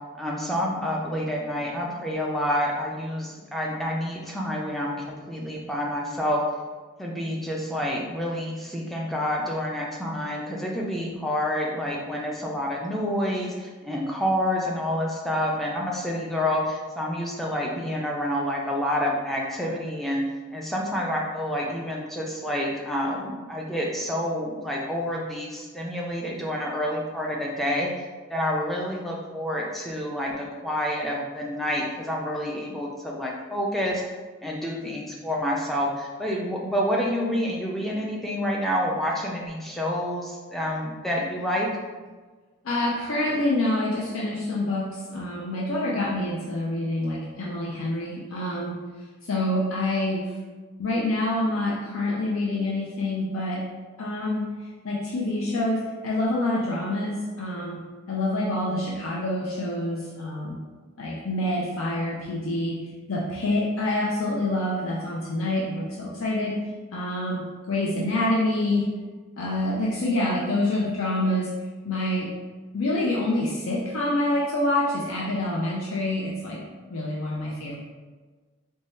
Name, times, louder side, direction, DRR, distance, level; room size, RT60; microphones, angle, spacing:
voice 1, 0.2-6.4 7.0-34.0 34.4-41.7, equal, ahead, -3 dB, 0.4 m, -28 dB
voice 2, 42.6-48.8 49.2-50.4 50.8-53.7 54.0-57.8 58.1-60.6 61.0-62.8 63.1-66.6 66.9-68.9 69.4-71.5 71.8-72.3 72.7-76.6 76.9-77.8, left 1 dB, 70° left, -4 dB, 0.5 m, -27 dB
4.2 x 2.2 x 3.1 m, 1.4 s
head